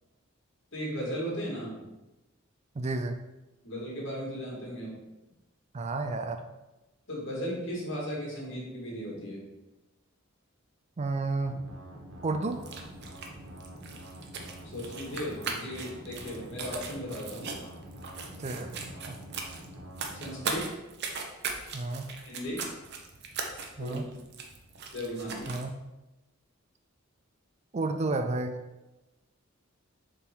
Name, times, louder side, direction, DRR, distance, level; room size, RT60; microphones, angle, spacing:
voice 1, 0.7-1.8 3.6-5.0 7.1-9.4 14.6-17.5 20.1-20.7 22.3-22.7 23.8-24.0 24.9-25.5, equal, 60° left, -3 dB, 2.1 m, -36 dB
voice 2, 2.7-3.2 5.7-6.5 11.0-11.6 12.2-12.6 18.4-19.2 21.7-22.1 23.8-24.0 25.5-25.7 27.7-28.6, right 3 dB, 30° right, 7 dB, 0.4 m, -31 dB
sound 1, 11.4-20.5, equal, 75° right, 1.5 m, -47 dB
sound 2, 12.5-25.7, right 4 dB, 55° right, 0.8 m, -40 dB
6.8 x 3.9 x 4.6 m, 1.0 s
head